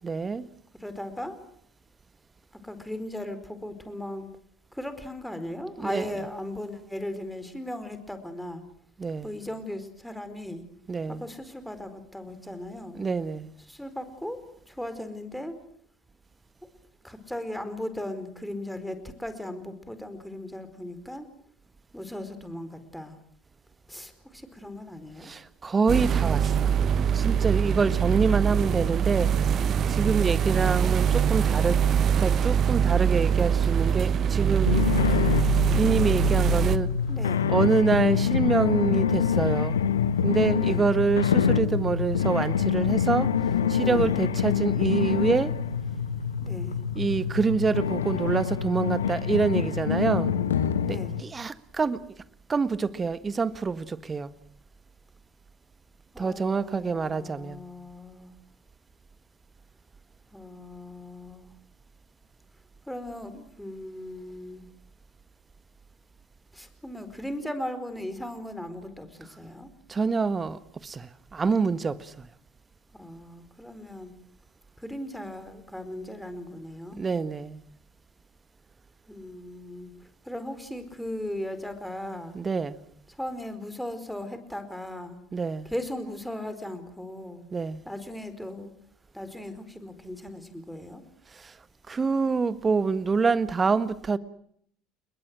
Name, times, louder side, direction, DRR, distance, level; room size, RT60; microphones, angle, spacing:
voice 1, 0.0-0.5 5.8-6.0 9.0-9.3 10.9-11.2 12.9-13.5 25.2-26.8 27.1-29.6 29.9-31.8 32.2-34.8 35.8-36.9 37.5-39.8 40.2-43.3 43.7-45.5 46.9-50.3 50.9-52.0 52.5-54.3 56.2-57.6 69.9-72.3 77.0-77.6 82.3-82.8 85.3-85.7 87.5-87.8 91.3-91.5 91.9-94.2, right 4 dB, 25° right, 1.6 m, -26 dB
voice 2, 0.7-1.4 2.6-4.3 4.7-8.6 9.2-10.6 11.1-13.0 13.7-15.6 17.0-21.3 21.9-23.2 23.9-25.3 30.4-30.8 37.1-37.5 40.6-40.9 43.6-44.2 46.4-46.8 50.8-51.2 56.1-58.3 60.3-61.5 62.9-64.6 66.5-69.7 72.9-74.1 74.8-77.0 79.1-82.4 83.1-85.2 85.6-87.5 87.8-88.7 89.1-91.0, left 1 dB, ahead, 4.6 m, -37 dB
sound 1, 25.9-36.8, right 8 dB, 40° right, 1.2 m, -23 dB
sound 2, 34.7-51.2, left 7 dB, 80° left, 1.3 m, -26 dB
30.0 x 21.5 x 6.3 m
figure-of-eight pair, 65°, 0 cm